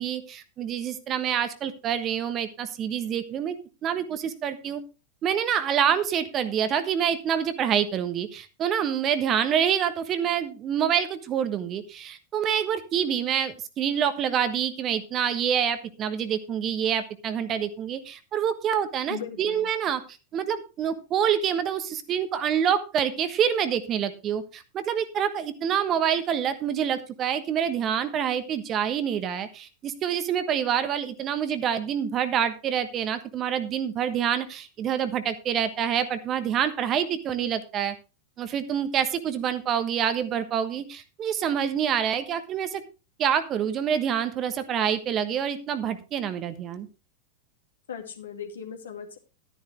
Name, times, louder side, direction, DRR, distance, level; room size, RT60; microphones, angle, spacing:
voice 1, 0.0-3.6 3.8-4.8 5.2-20.0 20.3-37.9 38.4-42.8 43.2-46.9, right 8 dB, 30° right, 11 dB, 1.2 m, -27 dB
voice 2, 19.1-19.7 47.9-49.2, left 7 dB, 65° left, 4 dB, 2.2 m, -38 dB
12.5 x 10.0 x 3.2 m, 0.31 s
figure-of-eight pair, 90°, 0 cm